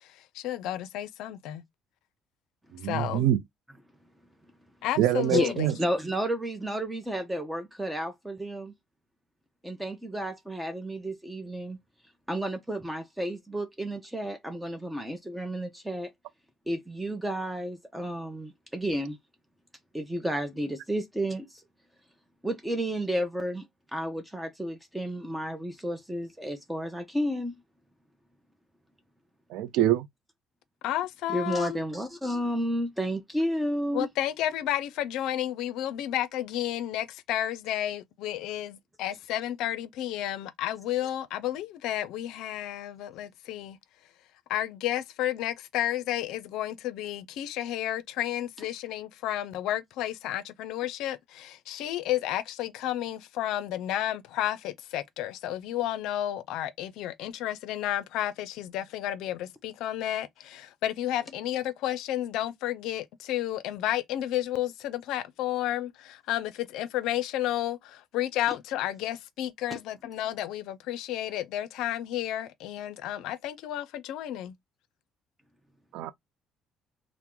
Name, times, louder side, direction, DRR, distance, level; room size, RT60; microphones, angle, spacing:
voice 1, 0.3-1.6 2.8-3.3 4.8-5.7 30.8-31.8 33.9-43.8 44.5-74.5, left 12 dB, 75° left, 0.4 m, -32 dB
voice 2, 2.7-3.4 5.0-5.7 29.5-30.1 75.9-76.1, right 12 dB, 80° right, 0.3 m, -25 dB
voice 3, 5.3-8.7 9.6-11.8 12.3-16.1 16.7-19.2 19.9-21.6 22.4-23.7 23.9-27.6 31.3-34.1 69.7-69.8, equal, 10° right, 0.6 m, -31 dB
2.8 x 2.0 x 3.5 m
supercardioid pair, 75°, 0 cm